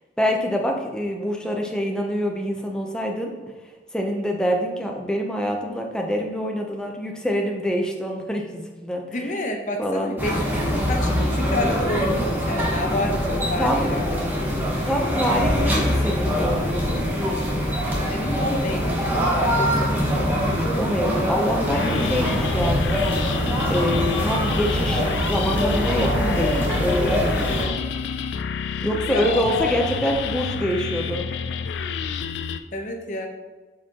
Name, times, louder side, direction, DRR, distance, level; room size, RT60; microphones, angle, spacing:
voice 1, 0.2-3.3 3.9-9.0 9.8-10.1 13.6-14.0 14.9-17.1 20.8-23.0 23.7-27.4 28.8-31.3, equal, 5° left, 1 dB, 0.6 m, -25 dB
voice 2, 9.1-14.6 18.1-19.0 19.5-20.1 27.4-27.8 29.0-29.7 30.7-30.8 32.7-33.3, left 1 dB, 45° left, 3 dB, 0.8 m, -29 dB
sound 1, 10.2-27.6, equal, 10° right, 1.0 m, -23 dB
sound 2, 21.7-32.6, left 6 dB, 85° left, 0.4 m, -29 dB
7.4 x 4.4 x 2.9 m, 1.3 s
head